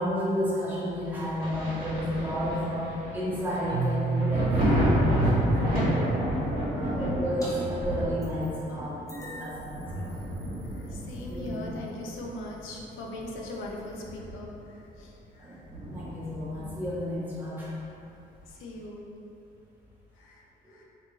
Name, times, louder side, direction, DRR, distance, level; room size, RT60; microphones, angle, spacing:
voice 1, 0.0-6.2 6.7-10.1 10.5-10.6 11.3-11.6 15.4-15.6 15.9-17.7 20.7-20.8, equal, 10° right, -10 dB, 1.0 m, -32 dB
Thunder, 1.4-12.7 13.2-14.7 15.0-15.1 15.7-17.0 18.4-18.5, equal, 45° right, 1.1 m, -30 dB
Keyboard (musical), 3.7-6.6, right 5 dB, 65° right, 0.6 m, -31 dB
sound 1, 7.4-7.5 7.8-8.7 9.1-14.2, left 1 dB, 15° left, 0.7 m, -49 dB
voice 2, 10.6-15.6 18.5-19.0 20.2-20.4 20.7-20.8, left 1 dB, 85° left, -2 dB, 0.4 m, -40 dB
2.9 x 2.5 x 2.4 m, 2.9 s
cardioid pair, 90°, 20 cm